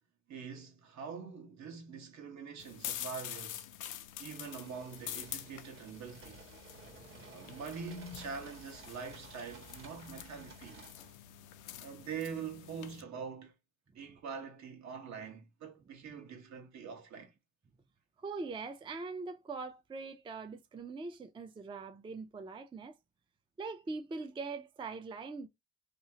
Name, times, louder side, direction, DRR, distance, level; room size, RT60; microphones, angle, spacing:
voice 1, 0.3-3.7 4.2-6.4 7.3-10.9 11.8-13.5 13.9-17.3, right 6 dB, 65° right, 1.1 m, -44 dB
sound 1, 2.6-13.0, left 12 dB, 90° left, 0.5 m, -47 dB
sound 2, 4.1-11.2, right 3 dB, 45° right, 1.2 m, -55 dB
voice 2, 6.7-7.5 18.2-23.0 23.6-25.5, right 4 dB, 15° right, 0.4 m, -42 dB
2.9 x 2.3 x 2.8 m
cardioid pair, 90°, 30 cm